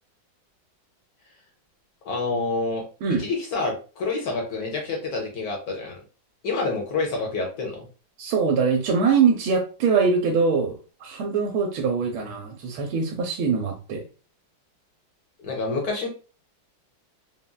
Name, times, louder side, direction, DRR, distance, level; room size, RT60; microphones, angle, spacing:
voice 1, 2.0-2.8 3.2-6.0 6.4-7.9 15.4-16.1, left 3 dB, 60° left, 0 dB, 1.2 m, -28 dB
voice 2, 8.2-14.1, right 5 dB, 85° right, 2 dB, 1.4 m, -23 dB
3.8 x 2.1 x 2.2 m, 0.36 s
omnidirectional pair, 2.2 m